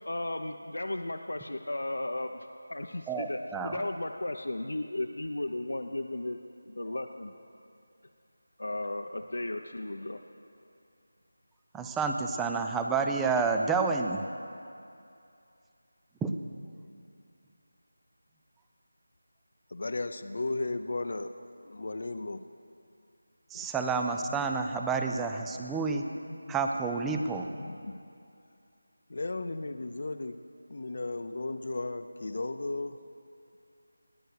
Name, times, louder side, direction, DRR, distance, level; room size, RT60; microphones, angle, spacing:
voice 1, 0.1-6.4 6.6-7.4 8.6-10.2, left 1 dB, 85° left, 4 dB, 0.7 m, -35 dB
voice 2, 3.1-3.8 11.7-14.2 16.2-16.3 23.5-26.0 26.5-27.5, right 4 dB, 5° right, 4 dB, 0.3 m, -29 dB
voice 3, 19.7-21.3 21.6-22.4 23.5-23.7 24.3-25.2 25.5-25.7 26.2-26.6 27.1-28.0 29.1-30.4 30.7-33.0, left 2 dB, 45° left, 10 dB, 0.5 m, -36 dB
19.5 x 8.1 x 6.5 m, 2.5 s
figure-of-eight pair, 175°, 0 cm